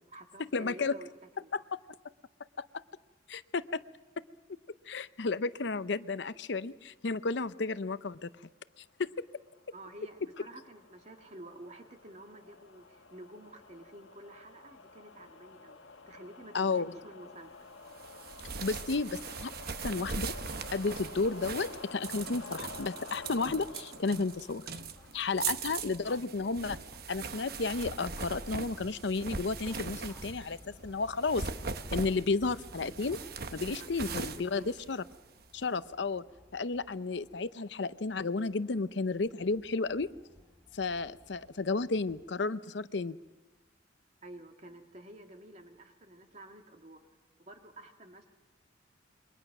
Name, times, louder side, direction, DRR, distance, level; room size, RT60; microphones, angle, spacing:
voice 1, 0.0-1.5 9.7-15.8 16.1-17.7 25.4-25.6 33.8-34.8 44.2-47.0 47.4-48.3, right 1 dB, 35° right, 4 dB, 2.3 m, -50 dB
voice 2, 0.5-0.9 1.5-1.8 2.6-2.8 3.3-3.8 4.2-4.3 4.9-8.3 9.0-9.1 16.5-16.9 18.6-19.5 19.8-20.3 20.7-24.6 25.1-26.8 27.1-31.5 31.9-33.2 33.5-35.0 35.5-36.2 36.5-40.1 40.7-43.2, left 3 dB, 65° left, 14 dB, 0.7 m, -32 dB
sound 1, 9.2-25.7, left 3 dB, 80° left, 1.7 m, -50 dB
sound 2, 18.0-30.6 31.1-35.4, right 5 dB, 55° right, 1.1 m, -40 dB
sound 3, 24.4-42.2, left 1 dB, ahead, 3.6 m, -56 dB
27.5 x 23.0 x 6.0 m, 1.2 s
head